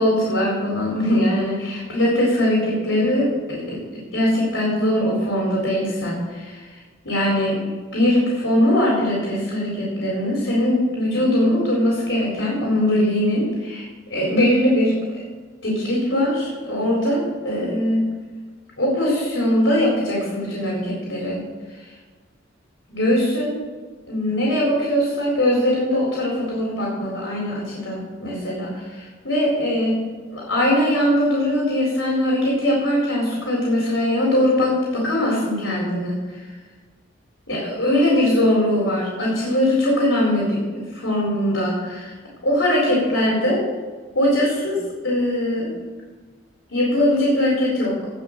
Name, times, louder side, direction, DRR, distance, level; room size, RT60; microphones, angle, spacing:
voice 1, 0.0-6.7 7.0-15.0 15.6-18.1 18.8-21.4 21.7-21.8 22.9-23.6 24.1-30.0 30.3-36.5 37.5-40.6 40.9-42.1 42.4-43.6 44.1-45.9 46.7-48.0, left 1 dB, 90° left, -4 dB, 4.1 m, -21 dB
17.5 x 6.1 x 6.5 m, 1.4 s
head